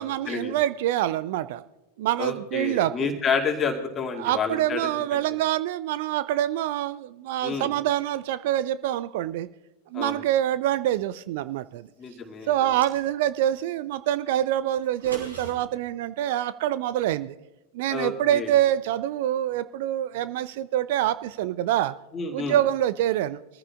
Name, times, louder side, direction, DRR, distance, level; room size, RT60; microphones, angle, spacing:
voice 1, 0.0-1.6 2.0-3.1 4.2-9.5 9.9-11.9 12.5-17.3 17.7-21.9 22.3-23.4, right 12 dB, 50° right, 16 dB, 0.4 m, -26 dB
voice 2, 2.2-4.8 5.1-5.2 7.4-7.7 9.9-10.2 12.0-12.5 17.9-18.5 22.1-22.6, left 5 dB, 20° left, 2 dB, 2.4 m, -29 dB
sound 1, 12.5-13.5 14.8-15.5, right 3 dB, 70° right, 4.5 m, -42 dB
23.0 x 14.5 x 2.4 m, 0.99 s
figure-of-eight pair, 90°, 0 cm